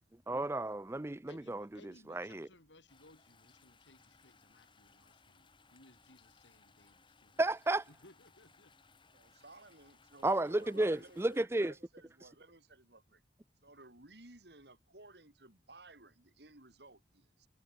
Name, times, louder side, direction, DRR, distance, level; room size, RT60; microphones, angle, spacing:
voice 1, 0.3-1.6 2.1-2.4 7.4-7.8 10.2-11.7, right 2 dB, 15° right, 0.4 m, -32 dB
voice 2, 1.3-7.4 7.9-8.8, left 2 dB, 85° left, 6.0 m, -62 dB
sound 1, 2.9-11.4, left 4 dB, 25° left, 4.8 m, -65 dB
voice 3, 9.1-13.2 13.6-17.5, right 2 dB, 65° right, 4.4 m, -57 dB
head